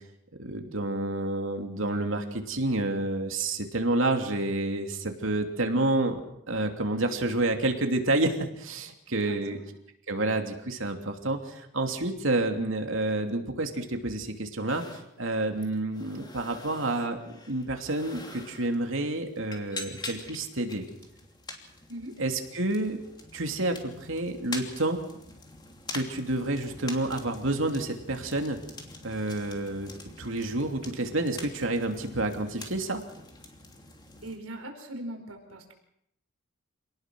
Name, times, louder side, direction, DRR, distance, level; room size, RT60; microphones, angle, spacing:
voice 1, 0.4-6.2 6.5-9.6 10.1-14.8 15.2-20.8 22.2-23.0 23.3-25.0 25.9-28.6 29.0-29.9 30.2-33.0, right 2 dB, 65° right, 4 dB, 2.9 m, -29 dB
voice 2, 9.2-9.7 21.9-22.2 34.2-35.7, right 1 dB, 80° right, 4 dB, 4.9 m, -40 dB
sound 1, 14.7-34.4, left 2 dB, 20° left, 3.0 m, -45 dB
27.5 x 19.0 x 6.3 m, 0.76 s
head